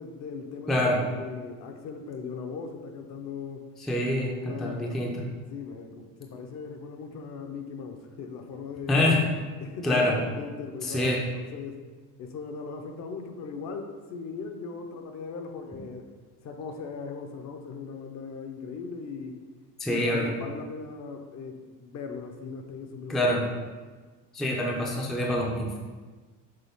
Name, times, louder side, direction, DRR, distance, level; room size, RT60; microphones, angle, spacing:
voice 1, 0.0-3.7 4.2-5.0 5.5-9.0 9.6-11.8 12.2-16.1 16.4-19.4 19.9-23.2 23.5-23.7, left 5 dB, 45° left, 5 dB, 0.7 m, -39 dB
voice 2, 3.8-4.3 4.6-5.2 8.9-9.2 9.8-10.2 10.8-11.2 19.8-20.3 23.1-23.4 24.3-25.8, left 1 dB, ahead, -1 dB, 0.4 m, -25 dB
6.7 x 4.0 x 3.5 m, 1.4 s
cardioid pair, 160°, 38 cm